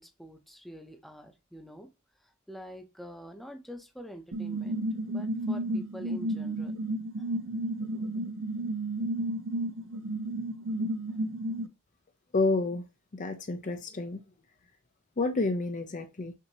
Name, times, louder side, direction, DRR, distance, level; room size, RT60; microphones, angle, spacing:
voice 1, 0.0-1.9 2.5-6.8, equal, ahead, 0.7 m, -46 dB
sound 1, 4.3-11.7, right 1 dB, 60° right, 0.6 m, -32 dB
voice 2, 12.3-12.8 13.1-14.2 15.2-16.3, left 3 dB, 35° left, 0.5 m, -29 dB
5.9 x 2.8 x 2.8 m
head